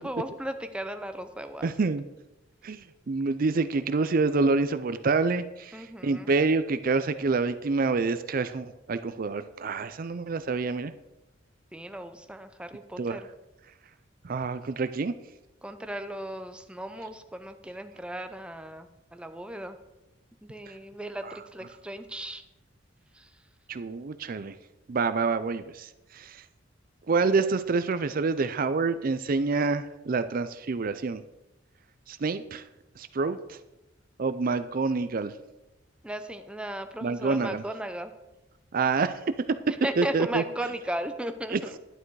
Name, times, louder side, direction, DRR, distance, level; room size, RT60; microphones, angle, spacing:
voice 1, 0.0-1.7 5.7-6.3 11.7-13.3 15.6-19.8 20.4-22.4 23.2-23.3 36.0-38.1 39.8-41.8, right 1 dB, 5° right, 8 dB, 0.6 m, -36 dB
voice 2, 1.6-2.0 2.6-10.9 13.0-13.2 14.2-15.1 21.2-21.3 23.7-24.5 24.9-26.4 27.1-31.2 32.1-32.6 33.0-33.6 34.2-35.3 37.0-37.6 38.7-39.2 40.0-40.4 41.5-41.6, right 4 dB, 45° right, 12 dB, 0.4 m, -27 dB
11.0 x 9.0 x 4.7 m, 1.0 s
head